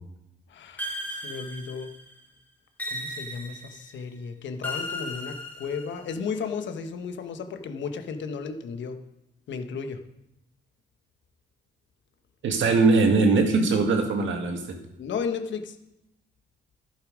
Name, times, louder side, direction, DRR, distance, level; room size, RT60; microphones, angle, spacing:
voice 1, 0.5-1.9 2.9-9.0 9.5-10.0 15.0-15.8, left 5 dB, 70° left, 8 dB, 1.1 m, -34 dB
sound 1, 0.8-2.1 2.8-3.9 4.6-6.1, left 1 dB, 10° left, 3.3 m, -36 dB
voice 2, 12.4-14.8, right 3 dB, 75° right, 4 dB, 1.8 m, -21 dB
11.5 x 6.6 x 5.0 m, 0.91 s
cardioid pair, 90°, 20 cm